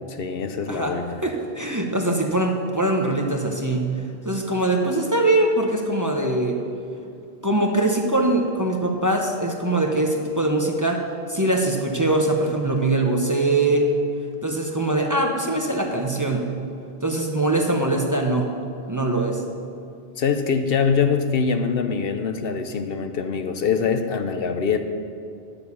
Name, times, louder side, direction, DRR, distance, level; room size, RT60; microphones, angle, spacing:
voice 1, 0.0-1.2 20.2-24.8, left 6 dB, 70° left, 7 dB, 0.9 m, -23 dB
voice 2, 1.2-3.9 4.2-6.6 7.4-11.0 11.3-13.9 14.4-16.5 17.0-18.5 18.9-19.4, right 2 dB, 20° right, 1 dB, 0.9 m, -22 dB
10.0 x 6.9 x 7.0 m, 2.6 s
omnidirectional pair, 1.0 m